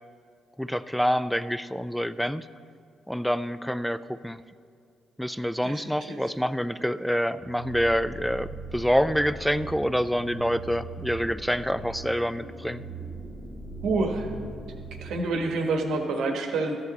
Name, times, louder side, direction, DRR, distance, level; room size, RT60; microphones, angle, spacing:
voice 1, 0.6-2.5 3.1-4.4 5.2-12.8, equal, ahead, 14 dB, 0.3 m, -27 dB
voice 2, 5.6-6.2 13.8-14.3 15.0-16.8, right 3 dB, 75° right, 3 dB, 1.3 m, -28 dB
sound 1, 7.4-15.1, right 2 dB, 15° left, 1.4 m, -40 dB
13.5 x 8.9 x 4.1 m, 2.2 s
cardioid pair, 90°, 0 cm